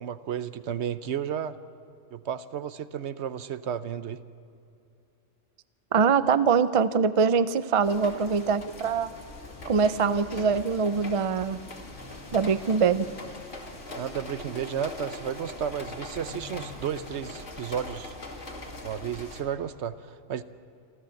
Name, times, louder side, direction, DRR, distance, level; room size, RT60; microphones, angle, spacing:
voice 1, 0.0-1.6 2.1-4.2 14.0-18.2 18.8-20.4, right 8 dB, 70° right, 13 dB, 1.0 m, -33 dB
voice 2, 5.9-9.1 9.7-11.6 12.3-13.1, right 6 dB, 40° right, 13 dB, 0.5 m, -23 dB
sound 1, 7.8-19.4, left 2 dB, 85° left, 2.6 m, -41 dB
27.5 x 13.5 x 7.7 m, 2.6 s
omnidirectional pair, 1.2 m